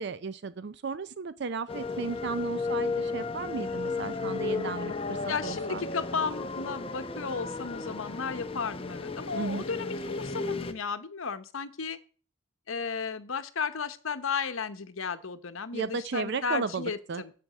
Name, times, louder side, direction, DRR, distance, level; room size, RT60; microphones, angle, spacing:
voice 1, 0.0-5.8 9.3-9.6 15.7-17.2, right 4 dB, 55° right, 15 dB, 0.4 m, -34 dB
sound 1, 1.7-10.7, left 3 dB, 25° left, 0.7 m, -34 dB
voice 2, 5.3-12.0 12.7-17.3, left 5 dB, 75° left, 11 dB, 0.9 m, -34 dB
8.0 x 7.5 x 7.5 m, 0.42 s
head